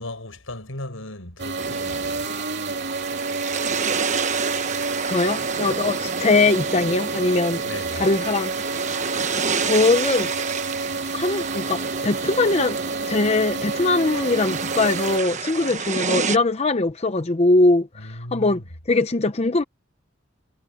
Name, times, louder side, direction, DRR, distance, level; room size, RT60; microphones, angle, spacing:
voice 1, 0.0-2.3 7.6-8.0 18.0-18.7, left 1 dB, 80° left, 5.7 m, -36 dB
sound 1, 1.4-15.2, right 3 dB, 55° right, 3.0 m, -29 dB
sound 2, 1.6-16.4, right 5 dB, 35° right, 1.2 m, -29 dB
voice 2, 5.1-7.6 7.9-8.5 9.1-9.2 9.6-10.3 11.1-12.8 13.1-18.6 18.9-19.6, left 3 dB, 30° left, 0.7 m, -21 dB
head